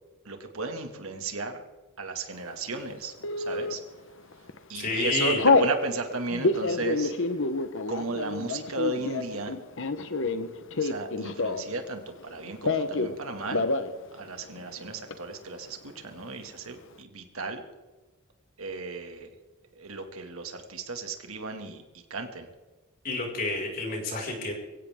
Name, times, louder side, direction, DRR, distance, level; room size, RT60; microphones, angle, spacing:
voice 1, 0.2-1.6 2.0-3.8 4.7-7.3 7.9-9.6 10.8-13.7 14.1-17.6 18.6-19.3 19.8-21.8 22.1-22.5, right 3 dB, 75° right, 5 dB, 2.3 m, -35 dB
Telephone, 3.2-3.7 4.3-4.6 4.9-5.7 6.3-11.8 12.1-13.2 13.4-13.9 14.2-14.3 14.6-15.1, left 3 dB, 60° left, 1.1 m, -27 dB
voice 2, 4.7-5.4 23.0-24.5, left 2 dB, 45° left, -1 dB, 5.7 m, -29 dB
23.0 x 16.5 x 3.8 m, 1.2 s
head